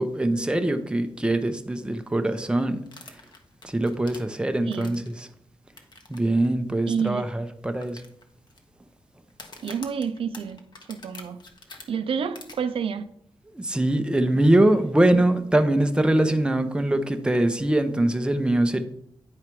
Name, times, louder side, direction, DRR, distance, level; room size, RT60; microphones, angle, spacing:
voice 1, 0.0-2.8 3.6-5.3 6.1-8.0 13.6-18.8, right 1 dB, 10° right, 0.7 m, -23 dB
sound 1, 2.9-5.2 5.8-6.2 6.4-6.5 7.1-7.2 7.8-8.6 9.3-11.8 12.3-12.5, left 3 dB, 55° left, 1.2 m, -45 dB
voice 2, 4.6-5.0 6.9-7.3 9.6-10.6 10.9-11.4 11.9-13.0, right 6 dB, 80° right, 0.5 m, -29 dB
9.7 x 4.8 x 4.6 m
wide cardioid pair, 110°, 9 cm